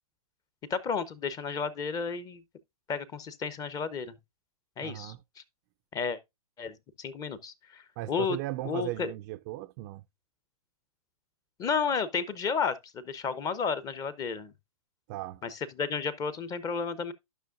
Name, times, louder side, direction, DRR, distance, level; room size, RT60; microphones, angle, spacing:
voice 1, 0.7-2.4 2.9-4.2 4.8-5.4 5.9-6.2 6.6-8.4 8.6-9.1 11.6-14.5 15.4-17.1, left 5 dB, 20° left, 0.7 m, -32 dB
voice 2, 4.8-5.2 8.0-10.0 15.1-15.4, right 17 dB, 30° right, 0.4 m, -37 dB
12.5 x 6.1 x 2.5 m
hypercardioid pair, 120°, 19 cm